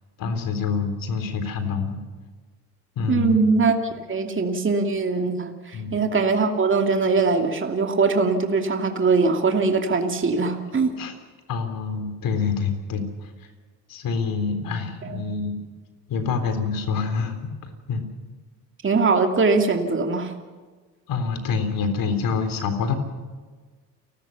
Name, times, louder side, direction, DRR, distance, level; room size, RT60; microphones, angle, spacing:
voice 1, 0.2-2.0 3.0-3.4 5.7-6.0 11.0-11.1 11.5-13.3 13.9-15.6 16.1-18.0 21.1-22.9, left 5 dB, 65° left, 8 dB, 3.8 m, -26 dB
voice 2, 3.1-10.9 15.0-15.2 18.8-20.3, right 4 dB, 35° right, 4 dB, 2.6 m, -21 dB
29.5 x 13.0 x 7.2 m, 1.4 s
supercardioid pair, 65°, 36 cm